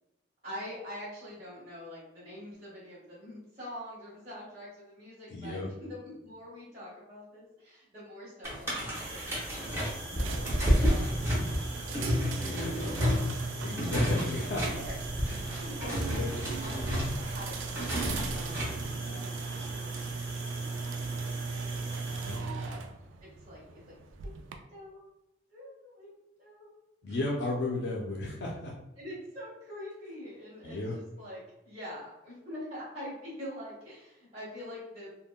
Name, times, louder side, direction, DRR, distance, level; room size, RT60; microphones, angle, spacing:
voice 1, 0.4-12.2 12.8-13.1 13.6-14.2 14.7-14.9 15.5-19.4 20.5-21.6 22.2-22.8 23.5-23.8 24.7-25.1 25.5-26.1 26.4-26.7 27.0-27.2 29.0-31.4 31.6-35.1, left 1 dB, 30° right, -11 dB, 1.1 m, -45 dB
voice 2, 5.3-5.7 12.4-12.9 13.6-14.7 15.3-15.6 16.1-16.4 22.3-22.5 27.0-28.7 30.6-31.0, left 2 dB, 70° left, -3 dB, 0.5 m, -34 dB
sound 1, 8.4-18.9, equal, 15° right, 0.8 m, -31 dB
sound 2, 8.9-22.4, right 2 dB, 65° right, 0.8 m, -43 dB
sound 3, 10.1-24.6, right 4 dB, 80° right, 0.3 m, -39 dB
3.5 x 2.1 x 2.2 m, 0.91 s
head